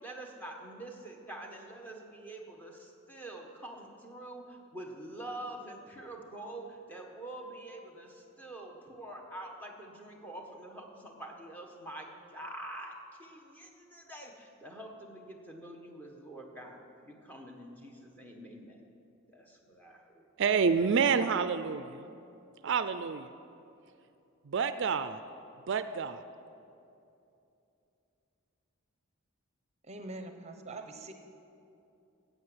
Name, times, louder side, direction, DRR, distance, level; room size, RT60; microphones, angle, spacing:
voice 1, 0.0-18.8 19.3-20.3, right 1 dB, 10° left, 1 dB, 1.4 m, -46 dB
voice 2, 20.4-22.0 22.6-23.3 24.5-25.2 25.7-26.2, right 6 dB, 60° right, 11 dB, 0.4 m, -28 dB
voice 3, 29.8-31.1, right 2 dB, 30° right, 5 dB, 0.9 m, -43 dB
14.5 x 8.2 x 7.9 m, 2.7 s
head